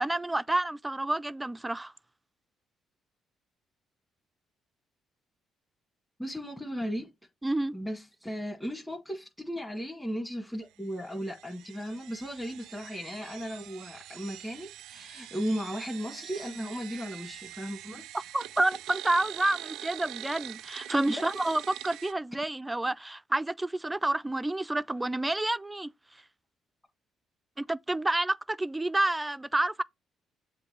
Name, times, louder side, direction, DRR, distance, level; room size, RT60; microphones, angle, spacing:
voice 1, 0.0-1.9 7.4-7.7 18.1-25.9 27.6-29.8, right 2 dB, 15° right, 0.4 m, -29 dB
voice 2, 6.2-7.1 7.7-18.0 21.1-21.3, equal, 10° left, 2.1 m, -36 dB
sound 1, 10.9-22.1, right 13 dB, 85° right, 0.3 m, -44 dB
7.6 x 2.7 x 4.6 m
supercardioid pair, 75°, 0 cm